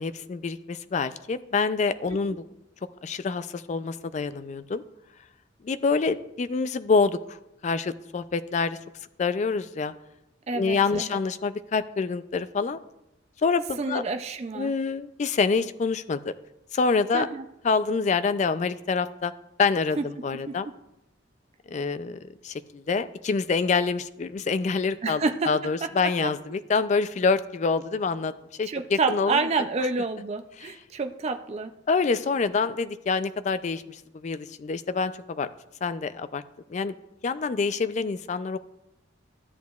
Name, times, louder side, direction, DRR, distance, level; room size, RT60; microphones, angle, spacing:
voice 1, 0.0-2.4 3.0-4.8 5.6-7.4 7.6-8.8 9.2-9.9 10.5-12.8 13.4-14.0 14.5-16.3 16.7-17.3 17.6-19.3 19.6-20.7 21.7-22.2 22.4-28.3 28.6-29.4 31.9-35.5 35.8-36.4 36.7-36.9 37.2-38.6, left 4 dB, 40° left, 12 dB, 0.3 m, -26 dB
voice 2, 10.5-11.2 13.8-14.7 17.1-17.4 20.0-20.1 20.5-20.6 25.0-25.5 25.8-26.3 28.7-31.7, right 4 dB, 35° right, 7 dB, 0.4 m, -29 dB
13.5 x 8.2 x 2.3 m, 0.89 s
head